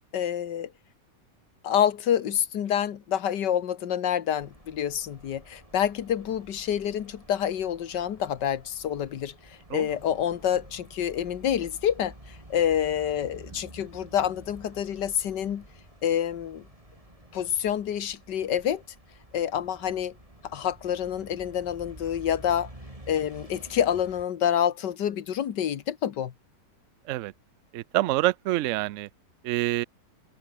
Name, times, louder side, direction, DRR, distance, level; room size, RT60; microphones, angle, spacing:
voice 1, 0.1-0.7 1.6-15.7 16.0-16.6 17.3-18.8 19.3-20.2 20.4-22.7 23.1-26.3, left 9 dB, 75° left, 1.8 m, -27 dB
sound 1, 4.4-24.3, right 1 dB, 20° right, 5.7 m, -50 dB
voice 2, 27.7-29.1 29.4-29.8, right 16 dB, 80° right, 0.7 m, -26 dB
omnidirectional pair, 1.9 m